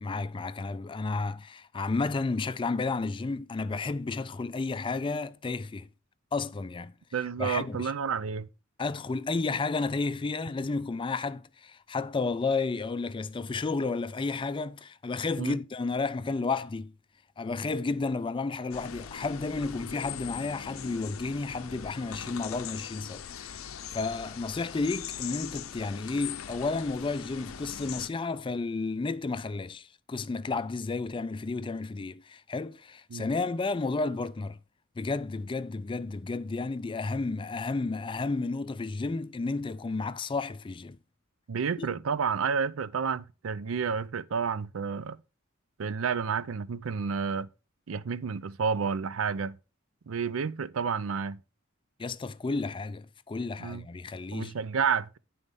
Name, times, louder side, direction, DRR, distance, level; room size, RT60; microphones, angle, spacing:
voice 1, 0.0-5.9 6.3-6.9 7.4-7.9 8.8-16.9 17.4-34.6 35.0-41.0 41.8-41.9 52.0-54.5, left 3 dB, 25° left, 0.4 m, -32 dB
voice 2, 7.1-8.5 15.4-15.6 33.1-33.3 41.5-45.2 45.8-47.5 47.9-49.6 50.1-51.4 53.6-53.8 54.3-55.2, right 6 dB, 75° right, 0.5 m, -30 dB
sound 1, 18.7-28.1, left 8 dB, 85° left, 0.6 m, -41 dB
9.6 x 4.3 x 5.2 m
head